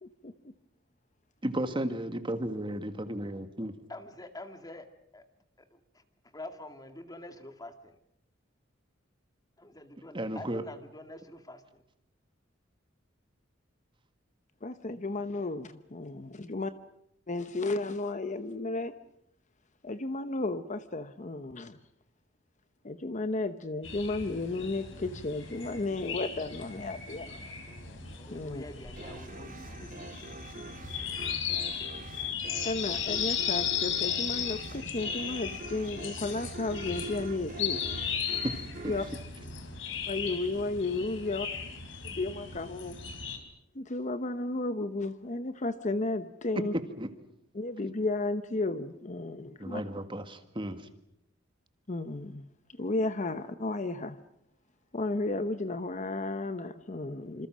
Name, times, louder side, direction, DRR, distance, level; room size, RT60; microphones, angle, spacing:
voice 1, 0.0-0.3 14.6-16.7 17.3-18.9 19.8-21.8 22.8-27.4 28.3-28.6 32.6-37.8 38.9-39.1 40.1-41.5 42.0-43.0 43.7-46.7 47.5-49.8 51.9-54.2 54.9-57.5, left 2 dB, 40° left, 11 dB, 0.9 m, -33 dB
voice 2, 1.4-3.7 10.1-10.6 38.4-38.6 46.6-47.1 49.6-50.8, right 1 dB, 25° right, 8 dB, 1.8 m, -33 dB
voice 3, 3.9-5.3 5.6-8.0 9.6-11.8 14.8-15.0 27.3-30.1 39.8-39.9, left 1 dB, 20° left, 7 dB, 2.1 m, -47 dB
sound 1, 23.8-43.4, left 7 dB, 75° left, 3.7 m, -36 dB
sound 2, 29.0-40.2, right 2 dB, 45° right, 2.2 m, -45 dB
27.0 x 26.5 x 6.3 m, 0.78 s
head